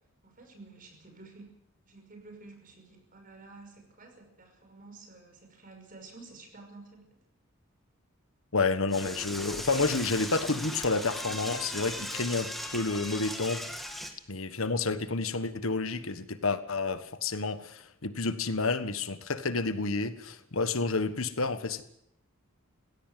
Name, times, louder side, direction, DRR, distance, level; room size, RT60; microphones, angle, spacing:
voice 1, 0.2-1.5 1.8-7.1 14.5-14.7, right 3 dB, 40° right, 4 dB, 5.8 m, -51 dB
voice 2, 8.5-13.6 14.3-21.8, left 3 dB, 80° left, 12 dB, 1.4 m, -30 dB
Door / Toilet flush, 8.9-14.1, equal, ahead, 2.2 m, -38 dB
18.5 x 16.5 x 9.2 m, 0.78 s
head